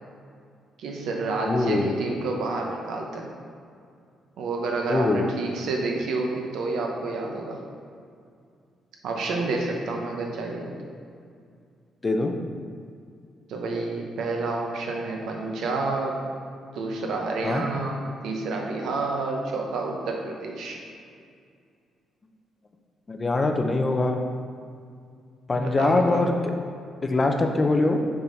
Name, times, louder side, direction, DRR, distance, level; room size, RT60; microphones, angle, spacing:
voice 1, 0.8-3.3 4.4-7.6 9.0-10.7 13.5-16.2 16.7-20.8 25.5-26.3, right 3 dB, 75° right, 0 dB, 0.9 m, -29 dB
voice 2, 1.5-1.9 4.9-5.3 12.0-12.3 17.4-17.6 23.1-24.2 25.5-26.3 27.0-28.0, left 2 dB, 30° left, 4 dB, 0.6 m, -23 dB
7.0 x 3.6 x 4.0 m, 2.3 s
cardioid pair, 90°, 0 cm